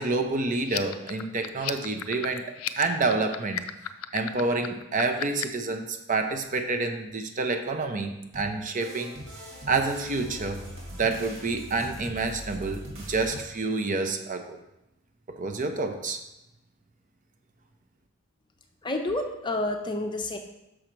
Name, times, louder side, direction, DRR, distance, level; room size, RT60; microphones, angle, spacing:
voice 1, 0.0-2.5 2.8-3.7 4.1-9.1 9.7-10.6 11.0-14.6 15.3-16.2, right 3 dB, 35° right, 5 dB, 0.6 m, -28 dB
sound 1, 0.6-5.6, left 11 dB, 80° left, 0.4 m, -35 dB
sound 2, 8.3-13.4, equal, 75° right, 2.1 m, -41 dB
voice 2, 18.8-20.4, left 2 dB, 20° left, 4 dB, 0.6 m, -29 dB
6.3 x 6.3 x 4.5 m, 0.92 s
head